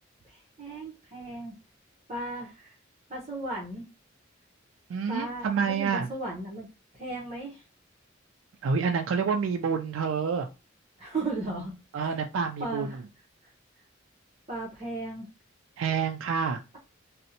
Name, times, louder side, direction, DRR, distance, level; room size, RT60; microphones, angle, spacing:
voice 1, 0.2-1.5 2.1-2.8 3.1-3.8 5.1-6.7 6.9-7.6 11.0-12.2 12.6-13.0 14.5-15.3, right 2 dB, 35° right, -4 dB, 0.7 m, -36 dB
voice 2, 4.9-6.1 8.6-10.5 11.9-12.9 15.8-16.6, right 6 dB, 85° right, 4 dB, 0.3 m, -28 dB
2.5 x 2.0 x 2.7 m, 0.28 s
head